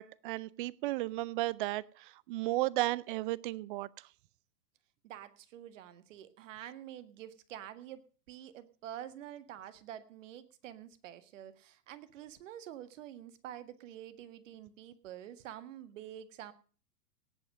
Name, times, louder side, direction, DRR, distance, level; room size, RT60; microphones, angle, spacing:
voice 1, 0.0-3.9, right 18 dB, 35° right, 0.6 m, -34 dB
voice 2, 5.0-8.0 8.3-16.5, right 11 dB, 50° right, 1.8 m, -47 dB
18.0 x 8.2 x 6.3 m
hypercardioid pair, 115°, 46 cm